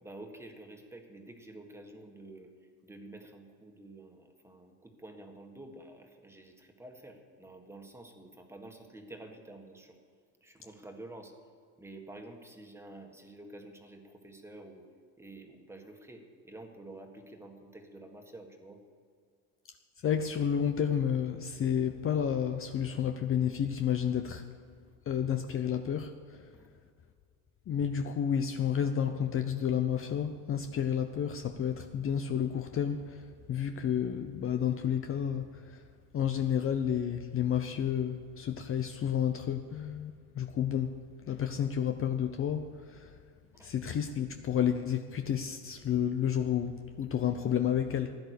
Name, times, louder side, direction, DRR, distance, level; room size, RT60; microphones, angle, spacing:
voice 1, 0.0-10.0 10.4-11.3 11.8-14.8 15.2-18.8 26.5-26.7 43.5-43.7, right 2 dB, 5° right, 3 dB, 1.8 m, -49 dB
voice 2, 20.0-24.4 25.1-26.5 27.7-35.8 36.1-40.9 41.3-43.1 43.6-48.1, left 8 dB, 40° left, 7 dB, 0.7 m, -31 dB
15.5 x 10.5 x 6.7 m, 2.1 s
cardioid pair, 120°, 35 cm